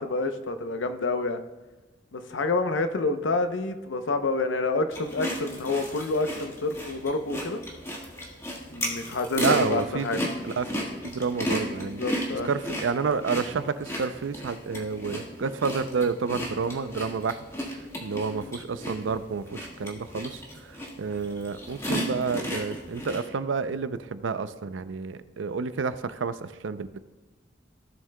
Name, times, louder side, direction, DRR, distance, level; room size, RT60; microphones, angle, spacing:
voice 1, 0.0-1.4 2.1-7.6 8.7-10.2 11.8-12.5 18.3-18.5, left 3 dB, 90° left, 8 dB, 0.7 m, -28 dB
sound 1, 4.9-23.2, left 1 dB, 15° left, 1.6 m, -35 dB
voice 2, 9.4-10.1 10.4-10.7 11.0-12.0 12.4-17.4 17.7-27.0, right 5 dB, 90° right, 13 dB, 0.5 m, -30 dB
16.0 x 7.3 x 2.2 m, 1.2 s
head